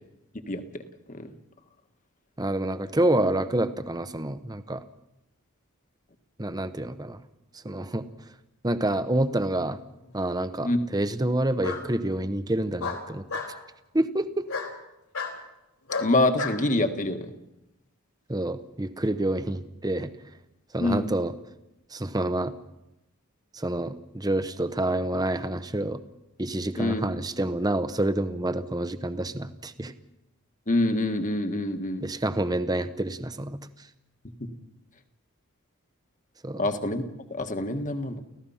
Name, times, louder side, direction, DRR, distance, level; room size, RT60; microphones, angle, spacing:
voice 1, 0.5-1.3 10.6-10.8 16.0-17.3 20.8-21.1 26.8-27.0 30.7-32.0 34.4-34.5 36.6-37.0 37.3-38.3, left 2 dB, 35° left, 7 dB, 1.6 m, -26 dB
voice 2, 2.4-4.8 6.4-7.2 7.6-8.1 8.6-9.8 10.1-13.2 13.9-14.5 18.3-20.1 20.7-21.3 21.9-22.5 23.5-26.0 26.4-29.9 32.0-33.6 36.4-36.6, right 1 dB, 15° right, 11 dB, 0.9 m, -28 dB
Bark, 9.5-10.1 11.6-11.8 12.8-13.5 14.5-14.7 15.1-15.4 15.9-16.6, left 4 dB, 70° left, 3.9 m, -32 dB
30.0 x 15.5 x 5.7 m, 0.93 s
head